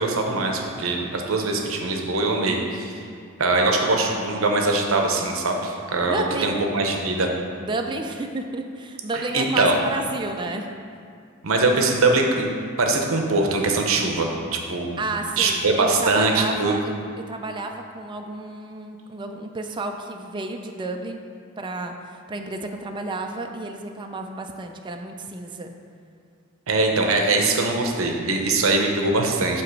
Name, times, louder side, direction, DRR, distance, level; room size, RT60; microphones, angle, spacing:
voice 1, 0.0-2.9 3.4-7.3 9.1-9.8 11.4-15.0 15.4-16.9 26.7-29.6, right 2 dB, 75° right, 2 dB, 0.8 m, -22 dB
voice 2, 6.0-6.6 7.6-10.8 15.0-21.2 21.6-25.7, right 2 dB, 25° right, 4 dB, 0.4 m, -31 dB
8.2 x 2.9 x 6.1 m, 2.3 s
head